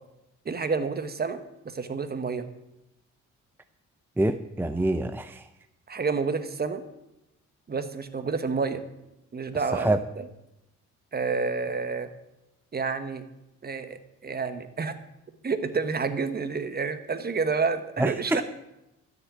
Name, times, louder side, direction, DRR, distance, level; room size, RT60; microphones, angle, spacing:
voice 1, 0.4-1.4 1.6-2.5 5.9-6.8 7.7-8.8 9.3-10.3 11.1-12.1 12.7-13.2 13.6-14.9 15.4-18.4, right 4 dB, 30° right, 10 dB, 1.3 m, -29 dB
voice 2, 4.2-5.4 9.7-10.0 18.0-18.4, right 1 dB, 5° right, 9 dB, 0.6 m, -26 dB
13.5 x 6.6 x 8.7 m, 0.91 s
cardioid pair, 90°, 30 cm